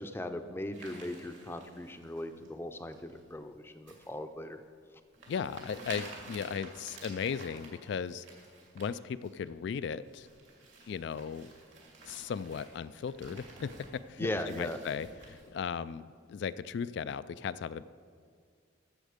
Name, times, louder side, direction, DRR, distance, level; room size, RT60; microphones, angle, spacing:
voice 1, 0.0-4.6 14.2-14.8, left 1 dB, 10° left, 8 dB, 0.5 m, -38 dB
sound 1, 0.7-2.5 2.9-3.3 3.9-4.1 4.6-4.7 5.1-8.9 9.2-9.4 9.8-15.5, right 3 dB, 70° right, 2.9 m, -51 dB
voice 2, 5.3-8.2 8.7-10.3 10.9-11.5 12.0-13.7 14.1-17.8, left 7 dB, 60° left, 14 dB, 0.3 m, -37 dB
14.5 x 7.2 x 5.1 m, 2.1 s
head